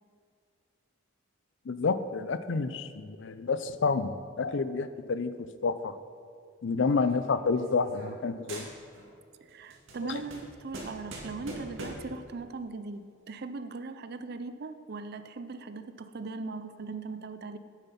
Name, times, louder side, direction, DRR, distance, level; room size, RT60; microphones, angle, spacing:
voice 1, 1.7-5.3 5.6-6.0 6.6-8.7 10.0-10.2, left 4 dB, 60° left, 13 dB, 0.5 m, -29 dB
sound 1, 6.8-8.2 8.5-9.2 9.5-12.2, right 1 dB, 70° right, 2.1 m, -43 dB
voice 2, 9.4-17.6, right 3 dB, 50° right, 10 dB, 0.5 m, -39 dB
9.0 x 7.8 x 5.8 m, 2.2 s
head